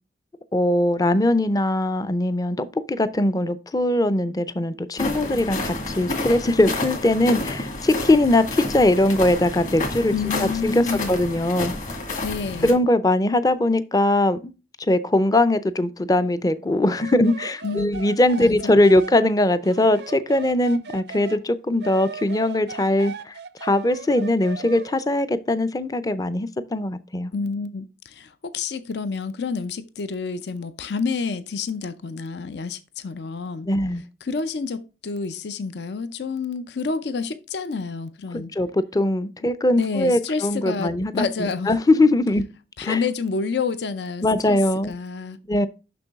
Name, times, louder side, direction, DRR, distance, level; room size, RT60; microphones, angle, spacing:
voice 1, 0.5-10.1 10.4-11.7 12.6-14.5 14.9-27.3 33.7-34.0 38.3-41.1 41.4-42.4 42.8-43.0 44.2-44.9 45.5-45.7, left 1 dB, 20° left, 0.4 m, -21 dB
sound 1, 5.0-12.7, left 2 dB, 45° left, 1.9 m, -30 dB
voice 2, 10.1-11.2 12.2-12.8 17.6-17.9 18.4-18.7 27.3-33.7 34.2-38.5 39.8-41.7 42.8-45.4, left 4 dB, 75° left, 0.5 m, -29 dB
sound 2, 16.9-21.4 21.8-25.0, right 5 dB, 70° right, 0.5 m, -37 dB
6.9 x 6.1 x 3.5 m
head